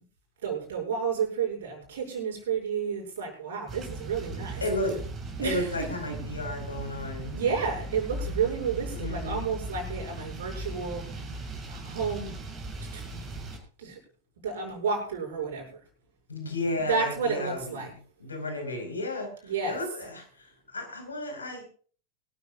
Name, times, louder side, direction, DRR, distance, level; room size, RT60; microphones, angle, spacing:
voice 1, 0.4-4.6 5.4-5.7 6.1-6.2 7.3-11.4 11.7-12.4 12.9-13.0 13.8-14.0 14.4-15.8 16.9-17.9 19.4-19.8, right 6 dB, 60° right, 1 dB, 6.9 m, -31 dB
sound 1, 3.7-13.6, right 2 dB, 25° right, 7.0 m, -38 dB
voice 2, 4.6-5.0 5.4-7.4 8.9-9.4 16.3-17.8 18.2-21.6, left 1 dB, 75° left, 5 dB, 4.9 m, -33 dB
24.0 x 14.0 x 2.5 m, 0.42 s
figure-of-eight pair, 90°, 0 cm